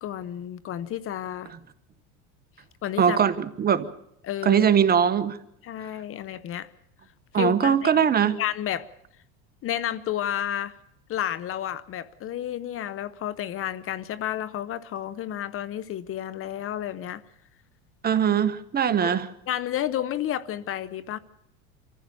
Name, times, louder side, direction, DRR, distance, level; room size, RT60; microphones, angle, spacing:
voice 1, 0.0-1.5 2.8-3.2 4.2-4.7 5.6-6.7 7.3-8.9 9.6-10.8 11.1-17.2 19.0-19.2 19.5-21.2, left 11 dB, 40° left, 0.9 m, -31 dB
voice 2, 3.0-3.9 4.4-5.4 7.3-8.4 18.0-19.3, right 8 dB, 30° right, 1.2 m, -21 dB
26.0 x 15.0 x 7.0 m
supercardioid pair, 115°, 34 cm